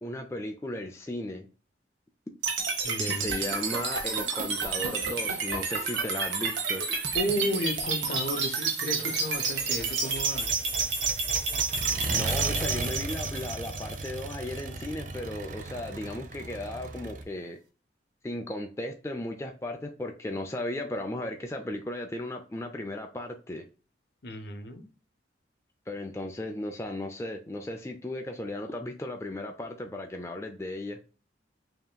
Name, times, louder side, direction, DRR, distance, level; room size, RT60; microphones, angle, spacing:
voice 1, 0.0-1.5 3.0-6.8 12.1-17.6 18.2-23.6 25.9-31.0, left 1 dB, 15° left, 3 dB, 0.4 m, -36 dB
sound 1, 2.4-14.5, right 4 dB, 85° right, 1.0 m, -30 dB
voice 2, 2.8-3.5 7.1-10.5 24.2-24.8, equal, 60° left, 7 dB, 0.7 m, -33 dB
Accelerating revving vroom, 9.0-17.2, right 3 dB, 45° right, 0.5 m, -36 dB
5.5 x 2.9 x 2.2 m, 0.35 s
head